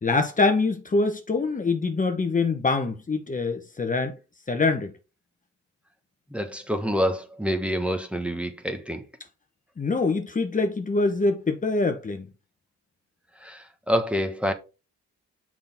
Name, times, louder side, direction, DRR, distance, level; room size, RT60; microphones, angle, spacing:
voice 1, 0.0-4.2 4.5-4.9 9.8-12.3, left 3 dB, 25° left, 1.2 m, -24 dB
voice 2, 6.3-9.0 13.4-14.5, equal, 5° right, 1.4 m, -27 dB
6.7 x 6.0 x 3.6 m
cardioid pair, 90°, 30 cm